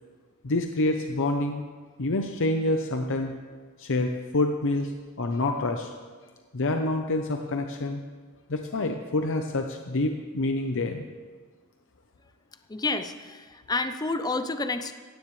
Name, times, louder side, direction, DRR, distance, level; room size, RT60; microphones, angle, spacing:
voice 1, 0.4-1.6 2.0-3.3 3.8-4.9 5.2-5.9 6.5-8.0 8.5-11.0, left 2 dB, 60° left, 4 dB, 0.8 m, -27 dB
voice 2, 12.7-14.9, left 3 dB, 20° left, 9 dB, 0.6 m, -29 dB
16.5 x 15.0 x 3.2 m, 1.5 s
head